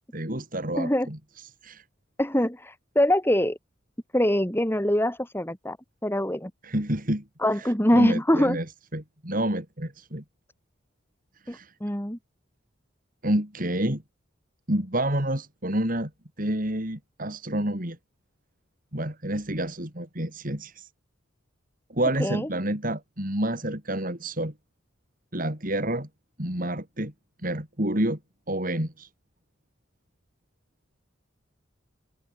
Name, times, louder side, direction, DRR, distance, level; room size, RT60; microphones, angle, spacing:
voice 1, 0.1-1.2 1.6-1.8 6.6-7.2 7.6-8.6 8.9-10.2 11.5-11.7 13.2-14.0 14.7-16.1 16.4-18.0 18.9-20.9 21.9-24.5 25.3-26.1 26.4-27.1 27.4-28.2 28.5-29.1, right 1 dB, 45° right, 4.5 m, -29 dB
voice 2, 0.8-1.1 2.2-3.6 4.1-5.8 6.0-6.5 7.4-8.6 11.5-12.2 22.2-22.5, left 1 dB, 10° left, 3.2 m, -24 dB
head